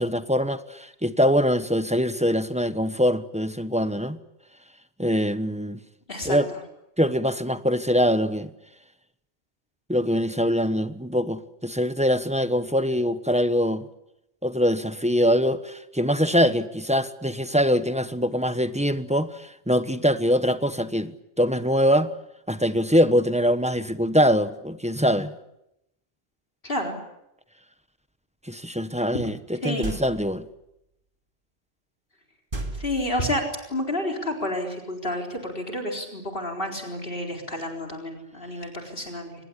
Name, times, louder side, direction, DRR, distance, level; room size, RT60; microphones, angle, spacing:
voice 1, 0.0-4.2 5.0-5.8 6.2-6.4 7.0-8.5 9.9-13.9 14.4-22.1 22.5-25.4 28.5-29.3 29.6-30.4, equal, 5° right, 1.1 m, -23 dB
voice 2, 6.1-6.6 26.6-27.0 29.6-29.9 32.7-33.4 33.7-39.5, left 1 dB, 55° left, 4.3 m, -30 dB
sound 1, 29.8-30.5 32.5-33.5, right 2 dB, 50° right, 2.8 m, -34 dB
24.5 x 20.5 x 9.8 m
omnidirectional pair, 1.1 m